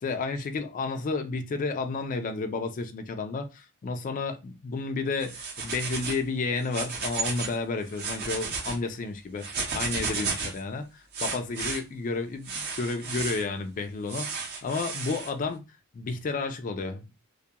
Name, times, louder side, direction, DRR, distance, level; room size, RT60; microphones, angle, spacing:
voice 1, 0.0-15.6 15.9-17.3, left 4 dB, 35° left, 0.3 m, -31 dB
sound 1, 5.2-6.2 6.6-7.6 7.9-8.8 9.4-10.6 11.1-11.8 12.4-13.4 14.1-15.3, right 4 dB, 45° right, 0.7 m, -33 dB
2.2 x 2.2 x 2.8 m
head